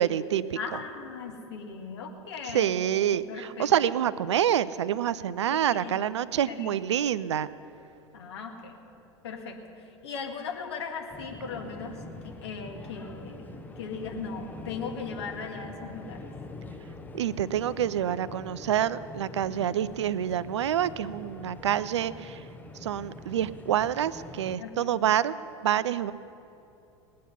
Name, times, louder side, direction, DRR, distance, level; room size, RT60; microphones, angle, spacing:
voice 1, 0.0-0.6 2.5-7.5 17.1-22.4 22.8-25.3 25.6-26.1, right 10 dB, 70° right, 17 dB, 0.4 m, -27 dB
voice 2, 0.6-2.8 3.3-3.7 5.5-6.1 6.5-7.1 8.1-8.8 9.2-13.4 13.8-16.3 19.5-19.6 24.6-25.0, left 5 dB, 60° left, 2 dB, 1.9 m, -38 dB
sound 1, 11.1-24.6, left 2 dB, 10° left, 1.0 m, -44 dB
20.0 x 8.6 x 5.6 m, 2.9 s
figure-of-eight pair, 80°, 16 cm